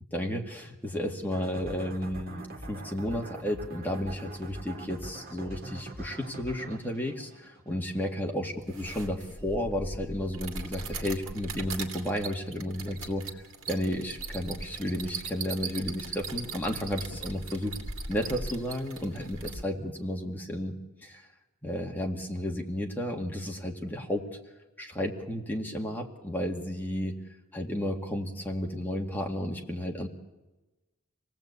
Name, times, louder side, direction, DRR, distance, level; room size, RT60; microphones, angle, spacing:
voice 1, 0.1-13.3 13.7-17.8 18.1-20.7 21.0-21.3 21.6-24.3 24.8-27.1 27.5-30.1, equal, 10° left, 0 dB, 2.0 m, -32 dB
sound 1, 1.3-8.1, right 2 dB, 45° right, 1.9 m, -43 dB
sound 2, 8.6-19.6, right 3 dB, 65° right, 2.6 m, -39 dB
26.5 x 18.5 x 8.3 m, 1.1 s
head